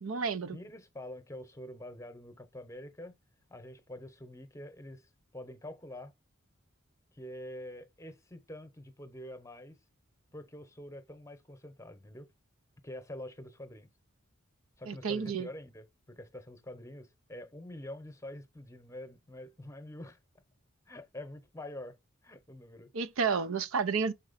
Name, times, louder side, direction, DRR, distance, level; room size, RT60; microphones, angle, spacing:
voice 1, 0.0-0.6 14.9-15.5 22.9-24.1, right 5 dB, 75° right, 0.6 m, -31 dB
voice 2, 0.5-3.1 3.5-6.1 7.1-9.8 10.3-12.3 12.8-13.9 14.8-20.2 20.9-22.0 22.2-22.9, left 1 dB, 15° left, 0.9 m, -46 dB
6.0 x 4.3 x 4.1 m
head